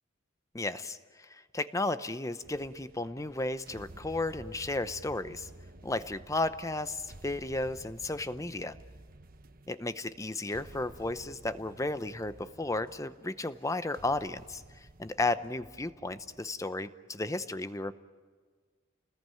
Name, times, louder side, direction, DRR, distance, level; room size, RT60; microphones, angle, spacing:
voice 1, 0.5-5.5 5.8-8.8 9.7-14.6 15.0-17.9, left 2 dB, 15° left, 12 dB, 0.7 m, -34 dB
sound 1, 2.4-16.7, right 1 dB, 45° right, 1.1 m, -53 dB
29.5 x 20.0 x 9.2 m, 1.5 s
head